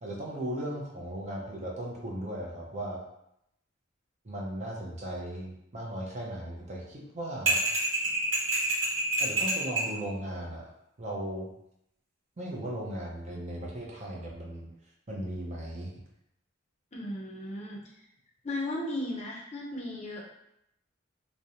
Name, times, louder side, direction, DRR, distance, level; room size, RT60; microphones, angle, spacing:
voice 1, 0.0-3.0 4.2-7.6 9.2-10.7 11.0-11.5 12.4-14.7 15.1-15.9, right 1 dB, 35° right, -2 dB, 0.5 m, -37 dB
sound 1, 7.5-9.9, right 2 dB, 70° right, 0.9 m, -27 dB
voice 2, 16.9-17.8 18.4-20.2, left 1 dB, 30° left, -3 dB, 0.5 m, -35 dB
2.4 x 2.1 x 2.8 m, 0.79 s
head